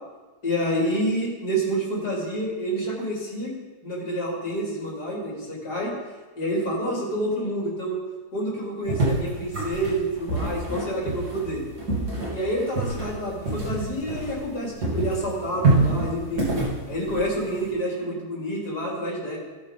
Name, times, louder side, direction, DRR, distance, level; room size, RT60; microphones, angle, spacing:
voice 1, 0.4-3.5 3.8-5.9 6.4-8.0 8.3-11.6 12.3-16.5 16.9-19.4, right 1 dB, 80° left, -4 dB, 3.3 m, -28 dB
sound 1, 8.9-14.6 14.8-17.7, right 2 dB, 85° right, 3.3 m, -26 dB
17.0 x 6.5 x 3.7 m, 1.2 s
omnidirectional pair, 1.7 m